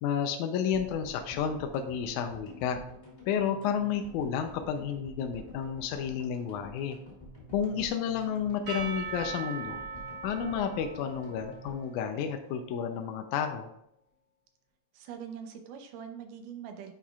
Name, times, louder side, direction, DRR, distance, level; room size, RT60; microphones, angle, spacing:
voice 1, 0.0-2.8 3.3-7.0 7.5-9.8 10.2-13.7, left 7 dB, 75° left, 6 dB, 1.9 m, -31 dB
sound 1, 0.7-13.0 13.2-13.3 13.5-13.6, equal, 10° left, 2.2 m, -49 dB
Percussion / Church bell, 8.7-13.0, right 5 dB, 60° right, 1.7 m, -41 dB
voice 2, 14.9-16.9, right 8 dB, 75° right, 5 dB, 2.4 m, -43 dB
9.8 x 5.9 x 2.4 m, 0.76 s
omnidirectional pair, 3.8 m